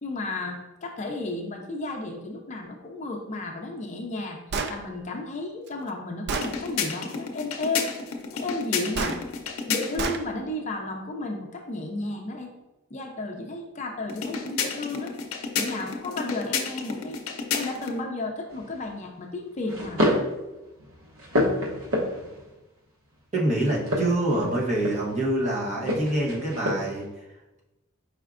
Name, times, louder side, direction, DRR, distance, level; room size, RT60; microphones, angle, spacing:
voice 1, 0.0-4.4 4.7-7.9 8.3-9.2 9.7-12.5 12.9-15.1 15.6-17.2 17.5-20.2, left 2 dB, 35° left, 2 dB, 0.5 m, -33 dB
Gunshot gunfire, 4.5-4.8 5.7-5.8 6.3-6.5 8.9-9.2 10.0-10.2, right 4 dB, 50° right, 0.3 m, -28 dB
sound 1, 6.3-10.2 14.1-18.0, left 6 dB, 90° left, 0.6 m, -31 dB
sound 2, 18.5-18.9 19.7-20.3 20.8-22.4 23.7-25.2 25.8-27.0, left 1 dB, 80° right, 0.9 m, -27 dB
voice 2, 23.3-27.1, right 1 dB, 35° right, -3 dB, 0.9 m, -26 dB
4.9 x 4.3 x 2.5 m, 1.0 s
head